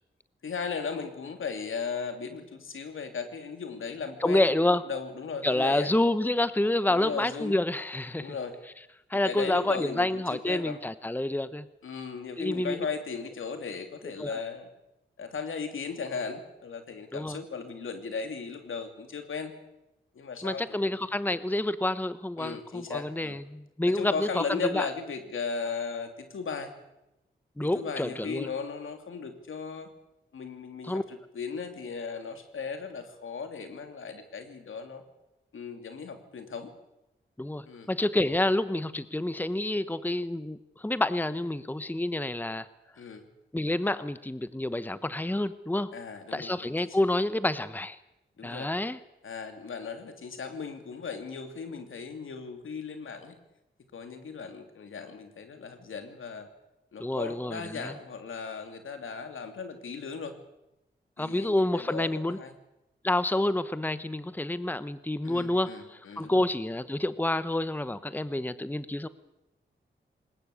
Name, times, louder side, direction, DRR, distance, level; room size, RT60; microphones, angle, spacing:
voice 1, 0.4-4.6 4.9-5.9 6.9-7.6 8.2-8.5 9.2-10.8 11.8-14.7 15.2-19.5 20.1-21.0 22.4-23.4 23.8-26.7 27.6-29.9 30.3-35.0 35.5-36.7 37.7-37.9 43.0-43.3 45.9-47.0 48.4-48.7 49.2-53.4 53.9-56.5 56.9-60.4 61.2-62.5 65.2-66.5, left 5 dB, 75° left, 6 dB, 2.8 m, -37 dB
voice 2, 4.2-4.8 5.4-8.3 9.1-11.7 12.4-12.8 14.2-14.3 17.1-17.4 20.4-24.8 27.6-28.5 30.8-31.0 37.4-42.7 43.5-45.9 46.3-48.0 48.4-49.0 57.0-57.9 61.2-62.4 63.0-69.1, left 1 dB, 10° left, 14 dB, 1.0 m, -28 dB
21.0 x 19.5 x 8.4 m, 0.89 s
cardioid pair, 50°, 21 cm